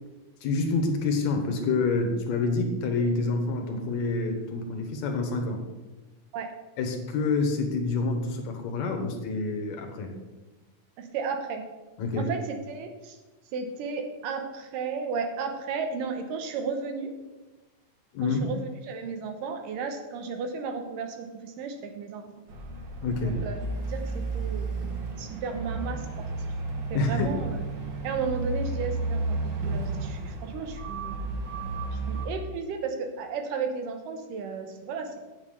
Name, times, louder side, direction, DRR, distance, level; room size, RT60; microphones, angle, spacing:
voice 1, 0.4-5.6 6.8-10.1 12.0-12.3 18.1-18.5 23.0-23.4 26.9-27.3, left 3 dB, 65° left, 5 dB, 2.4 m, -27 dB
voice 2, 11.0-11.6 12.2-13.2 13.5-17.1 18.2-22.3 23.2-23.6 23.9-24.7 25.2-26.3 26.9-27.6 28.0-31.2 31.9-35.2, right 5 dB, 80° right, 5 dB, 2.6 m, -34 dB
sound 1, 22.5-32.3, right 3 dB, 55° right, 1.3 m, -32 dB
8.4 x 7.3 x 6.5 m, 1.2 s
omnidirectional pair, 3.9 m